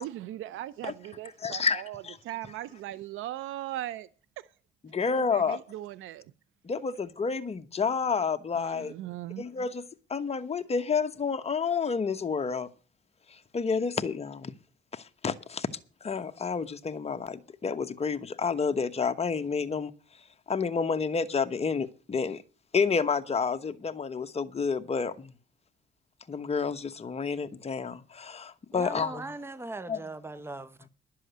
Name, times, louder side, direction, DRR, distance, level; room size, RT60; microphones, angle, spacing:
voice 1, 0.0-4.1 4.4-4.5 5.2-6.3 8.5-9.4, right 13 dB, 85° right, 0.6 m, -39 dB
voice 2, 1.4-2.2 4.9-5.6 6.6-8.9 9.4-9.8 10.1-12.7 13.3-14.5 14.9-15.7 16.0-19.9 20.5-22.4 22.7-25.3 26.3-29.3 29.9-30.0, left 5 dB, 30° left, 1.1 m, -30 dB
voice 3, 28.7-30.8, right 2 dB, 10° right, 0.9 m, -39 dB
11.0 x 7.6 x 8.1 m
cardioid pair, 90°, 20 cm